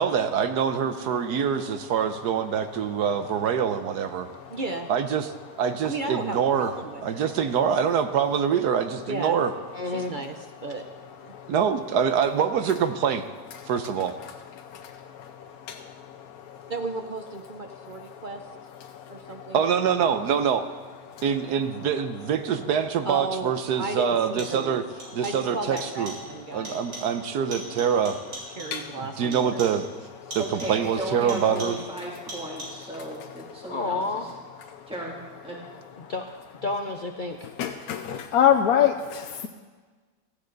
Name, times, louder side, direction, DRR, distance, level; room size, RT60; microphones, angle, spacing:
voice 1, 0.0-4.3 4.9-5.3 5.6-6.7 7.0-9.5 11.5-13.2 13.7-14.2 19.5-20.7 21.2-24.8 25.1-26.1 26.5-28.2 29.2-29.9 30.3-31.8, right 7 dB, 70° right, 9 dB, 1.3 m, -25 dB
voice 2, 4.5-4.9 5.8-7.5 9.1-9.4 9.9-10.4 10.6-10.8 11.2-11.3 16.7-18.4 19.1-19.6 23.0-24.8 25.2-26.8 28.6-29.7, right 3 dB, 50° right, 5 dB, 0.5 m, -34 dB
voice 3, 9.7-10.1 33.7-34.3 36.0-36.3 36.6-37.5, left 3 dB, 90° left, 4 dB, 0.4 m, -30 dB
sound 1, 24.1-24.7 25.0-25.5 25.8-26.3 26.6-27.2 27.5-28.9 29.3-29.9 30.3-30.9 31.3-31.9 32.3-32.9, right 1 dB, 90° right, 4.2 m, -41 dB
voice 4, 30.4-34.3 34.9-35.2 35.4-35.6, right 1 dB, 5° right, -3 dB, 2.4 m, -35 dB
voice 5, 37.6-38.9, left 10 dB, 65° left, 4 dB, 1.1 m, -21 dB
16.0 x 14.5 x 3.9 m, 1.4 s
omnidirectional pair, 1.8 m